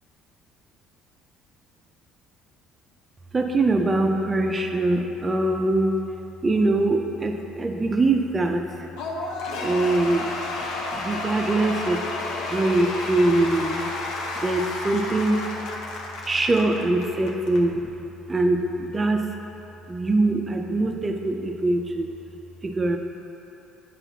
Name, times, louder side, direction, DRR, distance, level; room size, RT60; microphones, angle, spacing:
voice 1, 3.3-6.0 6.4-8.6 9.6-10.3 10.6-12.0 12.5-13.8 14.4-15.4 16.2-17.9 18.3-19.3 19.9-22.1 22.6-23.0, right 2 dB, 15° right, 3 dB, 0.4 m, -23 dB
Cheering / Applause / Crowd, 9.0-17.6, left 2 dB, 85° left, 0.7 m, -31 dB
9.0 x 5.8 x 2.7 m, 2.9 s
cardioid pair, 175°, 0 cm